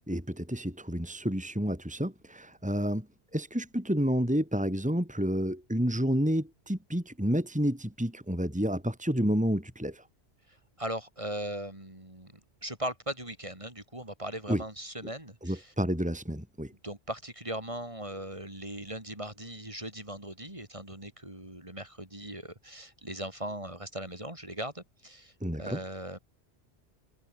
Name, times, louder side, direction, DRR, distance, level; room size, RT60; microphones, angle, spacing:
voice 1, 0.1-3.1 3.3-10.0 14.5-14.6 15.4-16.7 25.4-25.8, equal, 5° right, 3.1 m, -30 dB
voice 2, 10.5-15.7 16.8-25.3 25.6-26.2, right 1 dB, 30° right, 4.3 m, -39 dB
omnidirectional pair, 1.1 m